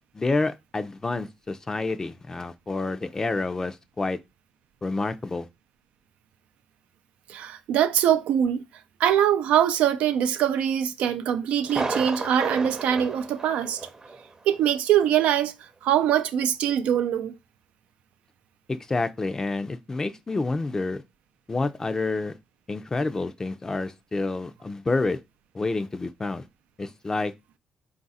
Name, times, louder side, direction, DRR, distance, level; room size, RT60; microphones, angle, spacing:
voice 1, 0.1-4.2 4.8-5.5 18.7-21.0 21.5-22.3 22.7-25.2 25.5-26.5 26.8-27.3, left 3 dB, 25° left, 0.4 m, -28 dB
voice 2, 7.3-8.6 9.0-13.8 14.5-15.5 15.8-17.3, right 10 dB, 90° right, 0.4 m, -23 dB
Thunder, 11.7-14.2 14.5-14.6 15.2-15.3, right 3 dB, 30° right, 0.6 m, -32 dB
3.9 x 2.5 x 4.0 m
cardioid pair, 85°, 2 cm